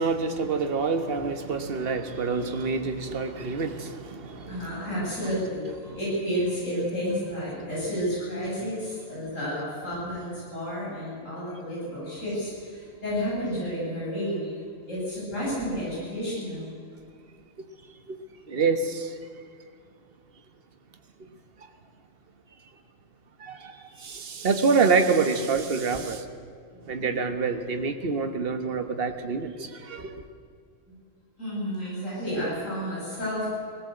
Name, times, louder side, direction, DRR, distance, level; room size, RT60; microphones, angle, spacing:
voice 1, 0.0-4.9 5.9-6.0 18.1-18.2 18.5-19.2 21.2-21.7 23.4-26.2 26.9-30.2, right 4 dB, 50° right, 1.6 m, -27 dB
voice 2, 4.5-14.5 14.9-16.7 26.7-27.1 30.9-31.0 31.4-33.5, equal, 75° left, 7.9 m, -31 dB
20.0 x 18.0 x 7.9 m
omnidirectional pair, 1.3 m